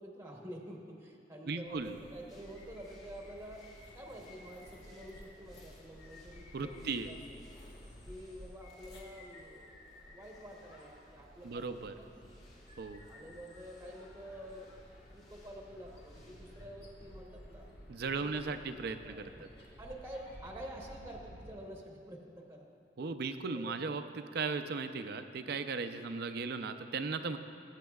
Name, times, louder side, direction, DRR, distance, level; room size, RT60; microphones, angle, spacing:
voice 1, 0.0-3.6 3.9-7.4 8.0-9.7 10.1-12.5 13.1-14.7 15.1-17.7 18.2-18.4 19.0-19.3 19.8-22.6 23.5-24.0, right 1 dB, 15° right, 0 dB, 0.9 m, -48 dB
voice 2, 1.5-2.0 6.5-7.1 11.4-11.9 12.8-13.0 17.9-19.5 23.0-27.4, right 4 dB, 60° right, 9 dB, 0.5 m, -37 dB
sound 1, 1.6-21.5, equal, 65° left, 1.8 m, -55 dB
sound 2, 2.3-16.7, left 2 dB, 40° left, 2.0 m, -60 dB
20.0 x 8.3 x 2.3 m, 2.5 s
head